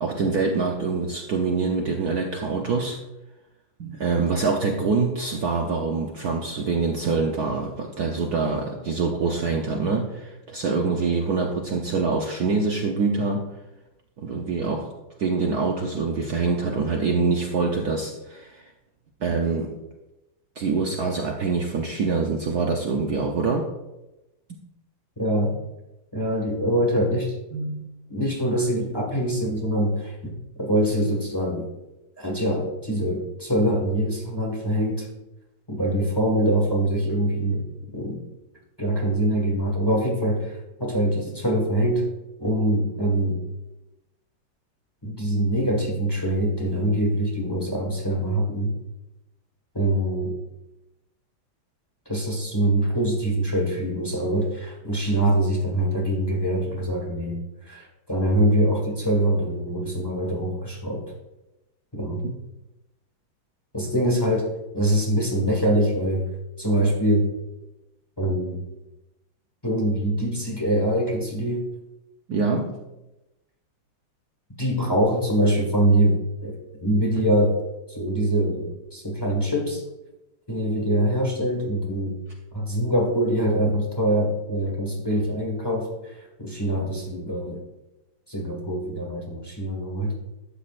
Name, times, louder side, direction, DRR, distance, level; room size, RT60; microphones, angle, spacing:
voice 1, 0.0-3.0 3.8-13.5 14.2-14.9 15.2-18.6 19.2-19.7 20.6-23.7 25.5-25.6 27.5-27.9 72.3-72.8, right 4 dB, 60° right, 1 dB, 1.1 m, -25 dB
voice 2, 25.2-25.5 26.1-27.3 28.1-31.7 32.2-35.1 35.7-38.2 38.8-42.0 42.4-43.4 45.0-48.7 49.7-50.4 52.0-57.4 57.6-61.0 61.9-62.2 63.7-66.3 66.6-67.3 68.2-68.6 69.6-71.6 74.6-77.5 77.9-79.8 80.5-82.2 82.5-87.6 88.3-90.1, right 1 dB, 15° left, -1 dB, 1.3 m, -24 dB
12.0 x 8.0 x 2.5 m, 0.98 s
omnidirectional pair, 2.3 m